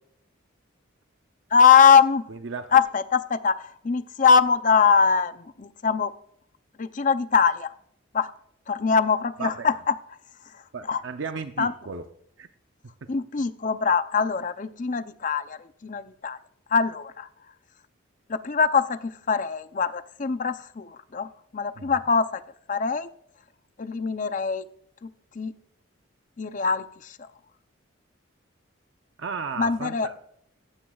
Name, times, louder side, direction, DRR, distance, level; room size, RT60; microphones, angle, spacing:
voice 1, 1.5-2.2 2.7-6.1 6.8-7.7 8.1-8.3 8.7-9.9 10.9-11.0 11.6-11.7 13.1-16.4 16.7-17.3 18.3-22.4 22.7-23.1 23.8-24.6 25.0-25.1 25.4-25.5 26.4-26.9 29.6-30.1, left 6 dB, 40° left, 12 dB, 0.5 m, -22 dB
voice 2, 2.3-2.8 9.4-9.7 10.7-12.0 12.4-12.5 21.8-21.9 29.2-30.1, right 5 dB, 70° right, 7 dB, 0.6 m, -34 dB
15.0 x 15.0 x 2.4 m, 0.72 s
head